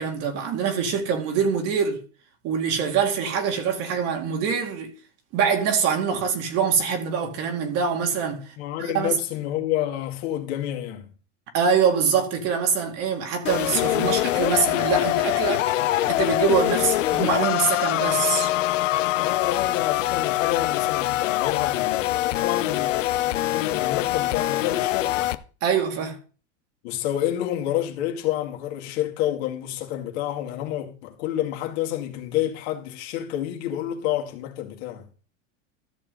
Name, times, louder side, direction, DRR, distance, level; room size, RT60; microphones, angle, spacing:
voice 1, 0.0-2.0 2.4-4.9 5.3-8.5 8.8-9.2 11.5-18.5 25.6-26.2, right 6 dB, 40° right, 2.2 m, -24 dB
voice 2, 8.6-11.1 19.2-25.3 26.8-35.1, left 12 dB, 60° left, 2.2 m, -29 dB
sound 1, 13.5-25.4, left 15 dB, 90° left, 0.8 m, -24 dB
13.5 x 6.9 x 4.0 m
supercardioid pair, 145°, 37 cm